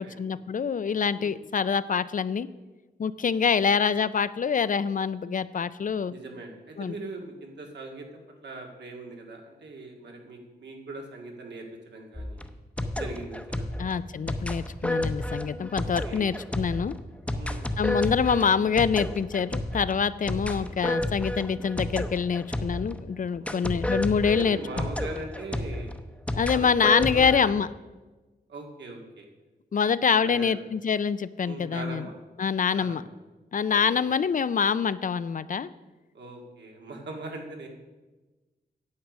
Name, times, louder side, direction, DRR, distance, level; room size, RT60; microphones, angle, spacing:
voice 1, 0.0-2.5 3.0-6.1 6.8-6.9 13.8-17.0 17.8-24.9 26.4-27.7 29.7-32.1 32.4-33.0 33.5-35.7, left 6 dB, 50° left, 16 dB, 0.4 m, -25 dB
voice 2, 3.2-3.7 6.1-12.5 13.0-13.9 15.8-16.4 17.3-17.6 20.2-20.7 23.4-25.9 26.5-27.6 28.5-29.2 29.7-30.7 31.4-32.1 32.7-33.1 33.7-34.1 36.1-37.7, right 2 dB, 90° right, 1 dB, 2.0 m, -41 dB
sound 1, 12.1-23.0 23.5-27.4, left 1 dB, 5° left, 0.8 m, -31 dB
9.5 x 8.1 x 6.1 m, 1.2 s
wide cardioid pair, 95°, 17 cm